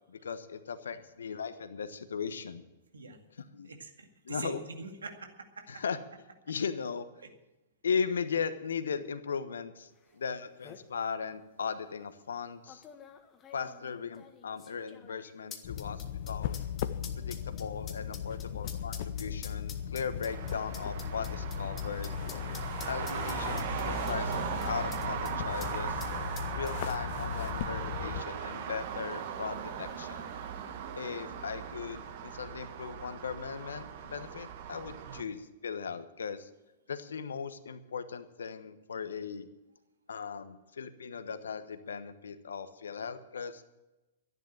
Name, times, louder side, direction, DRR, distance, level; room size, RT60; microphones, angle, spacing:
voice 1, 0.1-2.6 3.4-3.7 4.2-4.6 5.7-6.0 6.5-7.1 7.8-12.8 13.5-16.6 17.2-22.1 22.9-26.0 26.5-30.3 31.0-36.5 36.9-39.5 40.1-43.6, left 6 dB, 70° left, 11 dB, 1.2 m, -37 dB
voice 2, 3.6-5.8 7.2-7.3 35.1-35.3, right 3 dB, 75° right, 5 dB, 2.1 m, -44 dB
sound 1, 10.1-10.2 10.4-10.8 11.6-11.7 12.7-25.3 25.6-25.7 26.0-27.2 27.5-27.6, left 7 dB, 25° left, 1.5 m, -48 dB
sound 2, 15.6-28.2, left 9 dB, 50° left, 0.7 m, -37 dB
Traffic noise roadway noise, 20.3-35.2, right 8 dB, 50° right, 1.6 m, -38 dB
13.0 x 11.0 x 7.5 m, 1.0 s
figure-of-eight pair, 105°, 0 cm